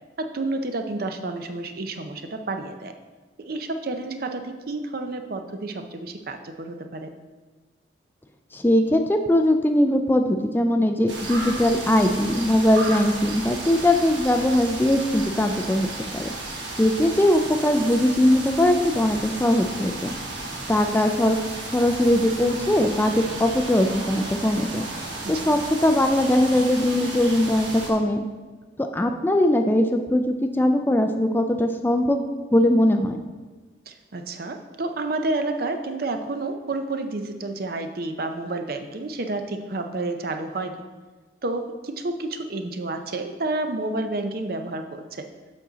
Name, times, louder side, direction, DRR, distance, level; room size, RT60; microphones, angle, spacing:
voice 1, 0.2-2.9 3.4-7.1 25.3-25.4 33.9-40.8 41.4-45.3, right 2 dB, 50° right, 6 dB, 0.6 m, -30 dB
voice 2, 8.5-16.3 16.8-20.1 20.7-21.4 21.7-24.8 25.3-28.2 28.8-32.2 32.5-33.2, left 1 dB, 10° left, 6 dB, 0.3 m, -20 dB
sound 1, 11.1-27.9, right 2 dB, 70° right, 1.3 m, -34 dB
7.4 x 6.1 x 3.9 m, 1.3 s
head